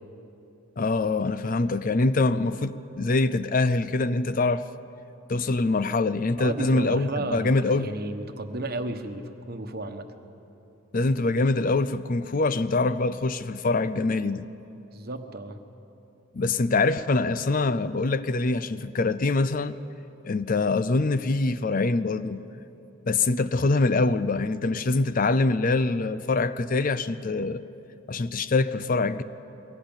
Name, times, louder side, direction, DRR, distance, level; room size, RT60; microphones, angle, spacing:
voice 1, 0.8-4.6 5.3-7.9 10.9-14.5 16.3-19.8 20.2-22.4 23.1-27.6 28.1-29.2, left 3 dB, 40° left, 0.5 m, -24 dB
voice 2, 6.4-10.1 14.9-15.6, right 2 dB, 45° right, 1.2 m, -33 dB
22.5 x 17.0 x 8.9 m
head